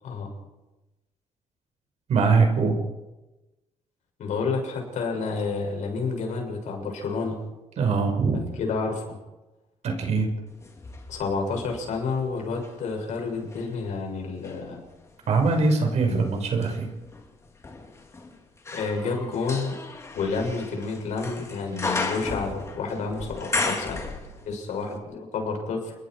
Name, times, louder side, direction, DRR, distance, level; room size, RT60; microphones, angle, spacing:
voice 1, 2.1-2.8 7.8-8.4 9.8-10.3 15.3-16.9, right 4 dB, 60° right, 4 dB, 5.6 m, -22 dB
voice 2, 4.2-7.4 8.3-9.0 11.1-14.9 16.0-16.2 18.7-19.8 20.1-24.1 24.5-25.9, left 4 dB, 70° left, 2 dB, 7.2 m, -30 dB
sound 1, 10.6-12.8 13.3-24.7 24.9-25.0, left 3 dB, 20° left, 2.9 m, -35 dB
30.0 x 21.0 x 4.9 m, 1.0 s
cardioid pair, 165°, 13 cm